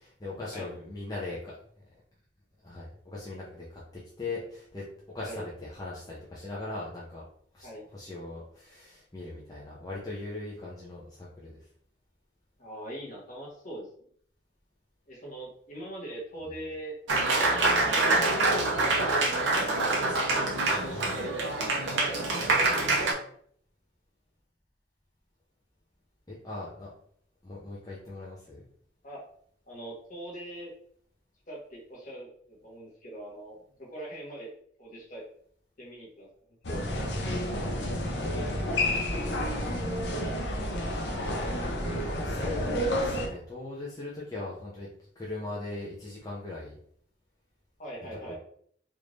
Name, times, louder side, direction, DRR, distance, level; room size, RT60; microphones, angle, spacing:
voice 1, 0.0-1.8 2.6-4.8 5.1-7.3 7.5-11.6 26.3-26.9 27.4-28.6 38.1-38.3 42.0-44.9 45.2-46.8 48.3-48.4, left 2 dB, 20° left, -6 dB, 0.6 m, -39 dB
voice 2, 12.6-13.9 15.1-17.0 17.5-19.5 20.3-20.5 20.7-21.5 21.9-22.5 29.0-29.2 29.7-30.7 31.5-34.5 34.8-35.2 35.8-36.3 36.7-36.8 47.8-48.4, right 1 dB, 45° left, -4 dB, 1.3 m, -42 dB
Applause, 17.1-23.1, right 2 dB, 90° right, 0.8 m, -25 dB
sound 1, 36.6-43.3, left 1 dB, 65° left, 0.7 m, -30 dB
3.5 x 2.6 x 3.2 m, 0.62 s
head